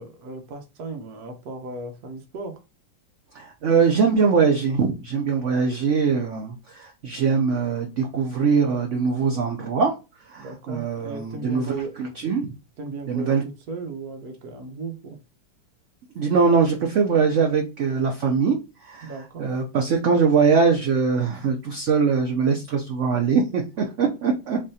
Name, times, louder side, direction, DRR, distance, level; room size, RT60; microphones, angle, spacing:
voice 1, 0.0-2.6 10.4-12.2 12.8-15.2 19.0-19.5 23.8-23.9, right 3 dB, 60° right, 5 dB, 1.2 m, -36 dB
voice 2, 3.3-9.9 10.3-11.7 12.0-12.5 13.1-13.4 16.2-18.6 18.9-19.1 19.4-24.6, right 5 dB, 85° right, 2 dB, 0.6 m, -22 dB
3.6 x 3.2 x 2.7 m, 0.29 s
omnidirectional pair, 1.9 m